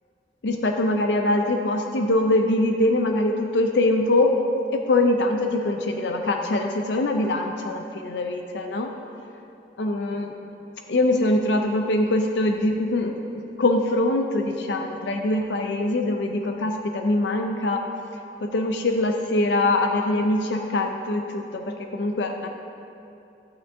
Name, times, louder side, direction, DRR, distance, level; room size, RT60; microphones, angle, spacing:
voice 1, 0.4-4.3 4.7-8.9 9.8-10.3 10.9-17.8 18.4-22.5, left 2 dB, 75° left, 4 dB, 0.5 m, -23 dB
12.5 x 8.8 x 2.7 m, 2.7 s
head